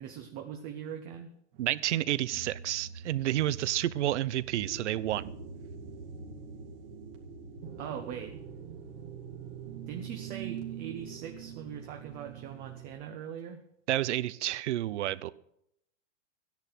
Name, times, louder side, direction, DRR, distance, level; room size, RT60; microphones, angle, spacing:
voice 1, 0.0-1.3 7.8-8.4 9.9-13.6, right 8 dB, 25° right, 5 dB, 0.8 m, -41 dB
sound 1, 1.5-12.9, right 7 dB, 50° right, 2.3 m, -44 dB
voice 2, 1.6-5.3 13.9-15.3, right 14 dB, 75° right, 19 dB, 0.7 m, -30 dB
13.0 x 10.5 x 6.1 m, 0.76 s
supercardioid pair, 160°, 35 cm